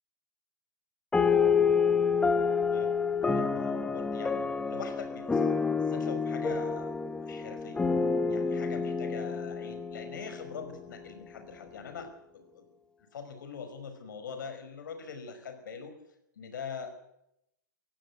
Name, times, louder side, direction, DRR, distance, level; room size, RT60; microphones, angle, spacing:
sound 1, 1.1-10.9, left 5 dB, 10° left, 1.0 m, -28 dB
voice 1, 3.3-5.6 5.9-6.9 7.2-7.8 8.3-12.6 13.1-16.0 16.4-16.9, left 6 dB, 75° left, 9 dB, 5.2 m, -43 dB
16.5 x 16.5 x 9.7 m, 0.81 s
hypercardioid pair, 125°, 10 cm